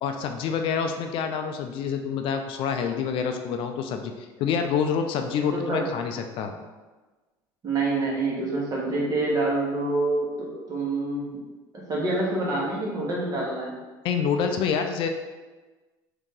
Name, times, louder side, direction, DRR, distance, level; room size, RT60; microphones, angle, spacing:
voice 1, 0.0-6.5 14.0-15.1, left 6 dB, 55° left, 6 dB, 0.4 m, -27 dB
voice 2, 5.5-5.8 7.6-11.4 11.7-13.7, right 2 dB, 35° right, -4 dB, 1.4 m, -27 dB
3.6 x 2.8 x 3.8 m, 1.2 s
supercardioid pair, 110°, 10 cm